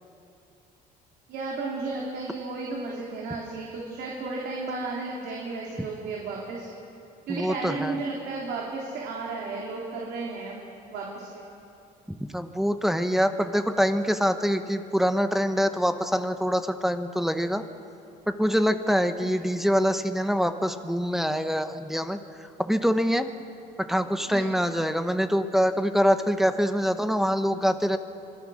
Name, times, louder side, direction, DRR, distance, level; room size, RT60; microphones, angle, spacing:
voice 1, 1.3-6.7 7.3-10.6 10.9-11.5 19.2-19.4 24.3-24.5, right 3 dB, 80° right, -3 dB, 3.5 m, -33 dB
voice 2, 7.3-8.0 12.2-17.6 18.3-23.3 23.8-28.0, equal, ahead, 8 dB, 1.1 m, -25 dB
26.0 x 20.0 x 6.5 m, 2.7 s
cardioid pair, 110°, 17 cm